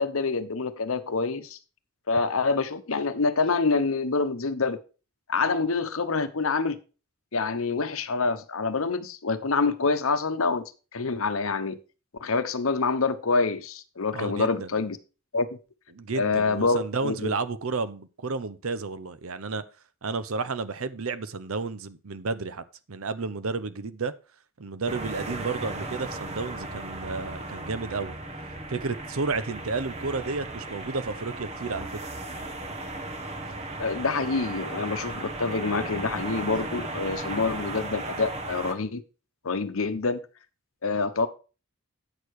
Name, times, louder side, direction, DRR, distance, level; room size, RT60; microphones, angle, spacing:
voice 1, 0.0-1.6 2.1-4.8 5.3-6.8 7.3-11.8 12.2-15.0 15.3-15.5 16.1-17.3 33.8-39.0 39.4-40.2 40.8-41.3, left 4 dB, 65° left, 0.9 m, -26 dB
voice 2, 14.1-14.7 15.9-19.6 20.0-24.1 24.6-28.2 28.7-31.9, right 4 dB, 70° right, 0.8 m, -32 dB
sound 1, 24.9-38.7, right 2 dB, 30° right, 1.2 m, -36 dB
8.8 x 6.6 x 4.7 m
head